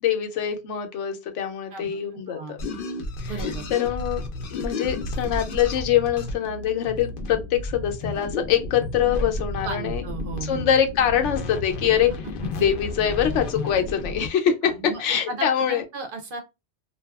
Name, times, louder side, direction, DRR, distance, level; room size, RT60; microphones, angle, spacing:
voice 1, 0.0-2.6 3.2-3.4 3.7-4.2 4.5-10.0 10.4-12.1 12.6-14.7 15.0-15.8, left 9 dB, 90° left, 0.9 m, -24 dB
voice 2, 1.7-2.5 3.2-3.7 9.6-10.7 14.6-16.4, right 3 dB, 60° right, 0.7 m, -35 dB
sound 1, 2.6-14.3, left 2 dB, 60° left, 0.6 m, -32 dB
2.6 x 2.3 x 2.2 m
omnidirectional pair, 1.2 m